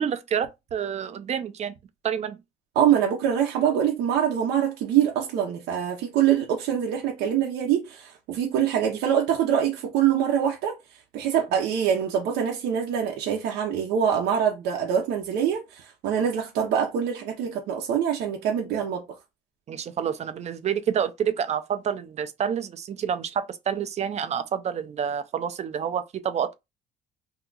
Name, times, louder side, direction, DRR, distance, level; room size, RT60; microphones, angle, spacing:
voice 1, 0.0-1.7 2.0-2.4 19.7-26.6, right 8 dB, 40° right, 0.5 m, -28 dB
voice 2, 2.8-10.8 11.1-19.0, right 9 dB, 80° right, 0.7 m, -24 dB
2.9 x 2.3 x 3.8 m
cardioid pair, 110°, 17 cm